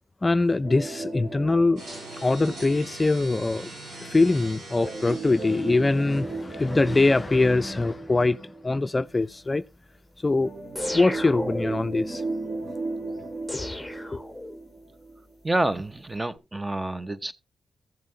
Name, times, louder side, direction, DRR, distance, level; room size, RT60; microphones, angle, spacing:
voice 1, 0.2-1.8 2.2-3.7 4.1-9.6 10.2-10.5 10.9-12.2 13.5-13.7 14.1-14.2, left 3 dB, 30° left, 0.4 m, -23 dB
sound 1, 0.6-3.3 4.8-9.1 10.4-15.3 15.6-15.7 16.3-16.4, right 3 dB, 55° right, 3.1 m, -36 dB
sound 2, 1.8-6.8, right 2 dB, 85° right, 5.1 m, -42 dB
sound 3, 10.8-12.0 13.5-14.8, left 1 dB, 5° left, 1.0 m, -35 dB
voice 2, 15.4-17.3, right 2 dB, 25° right, 0.8 m, -28 dB
15.0 x 7.3 x 2.7 m
cardioid pair, 60°, 0 cm